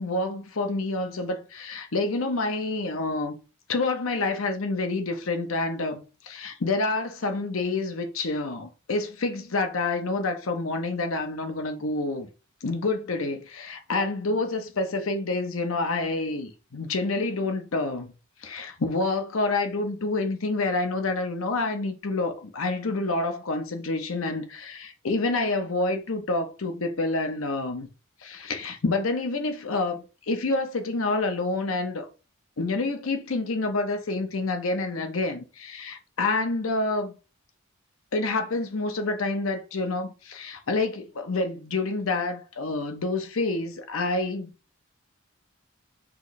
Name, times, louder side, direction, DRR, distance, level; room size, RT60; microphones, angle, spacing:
voice 1, 0.0-3.4 3.7-12.3 12.6-18.1 18.4-27.9 28.2-32.1 32.6-37.2 38.1-44.5, left 3 dB, 70° left, 0.8 m, -28 dB
6.1 x 3.1 x 2.7 m
head